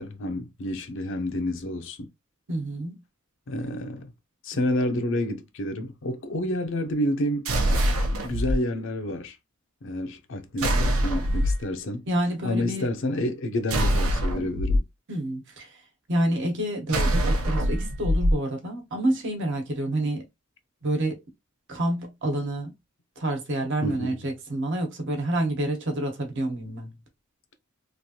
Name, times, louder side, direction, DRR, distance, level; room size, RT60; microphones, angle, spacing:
voice 1, 0.0-2.1 3.5-4.1 4.4-7.5 8.2-9.4 9.8-12.1 12.4-14.9 23.8-24.2, left 1 dB, 65° left, 0.6 m, -29 dB
voice 2, 2.5-3.0 12.1-12.9 15.1-15.7 16.1-20.2 20.8-21.2 21.7-22.7 23.2-26.9, right 1 dB, 60° right, 1.1 m, -28 dB
sound 1, 7.5-8.6 10.6-11.6 13.7-14.8 16.9-18.4, equal, 90° right, 0.7 m, -23 dB
3.1 x 2.5 x 2.8 m
head